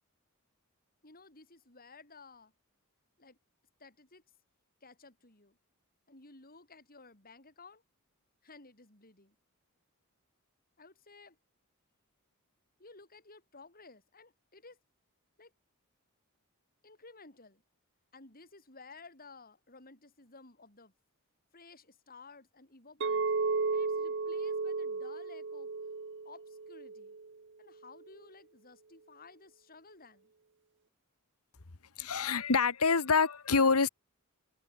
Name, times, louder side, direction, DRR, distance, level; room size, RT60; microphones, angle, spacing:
voice 1, 1.0-2.5 3.2-3.4 3.8-4.2 4.8-5.6 6.1-7.8 8.4-9.4 10.8-11.4 12.8-14.8 15.4-15.5 16.8-17.6 18.1-20.9 21.5-23.3 23.7-25.7 26.2-27.2 27.6-30.3, left 3 dB, 40° left, 8.0 m, -55 dB
Chink clink, 23.0-27.3, right 4 dB, 55° right, 0.9 m, -34 dB
voice 2, 32.0-33.9, left 4 dB, 85° left, 1.4 m, -26 dB
head